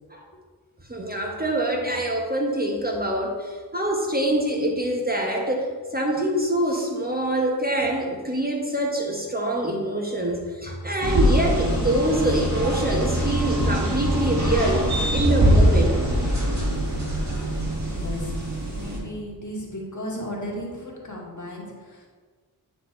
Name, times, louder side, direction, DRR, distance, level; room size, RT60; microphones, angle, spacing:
voice 1, 0.9-16.0, right 1 dB, 20° right, 0 dB, 1.0 m, -25 dB
sound 1, 11.0-19.0, equal, 45° right, 2.0 m, -23 dB
voice 2, 17.8-18.3 18.7-22.1, left 1 dB, 45° left, -3 dB, 1.8 m, -35 dB
9.1 x 4.2 x 4.3 m, 1.5 s
wide cardioid pair, 75°, 40 cm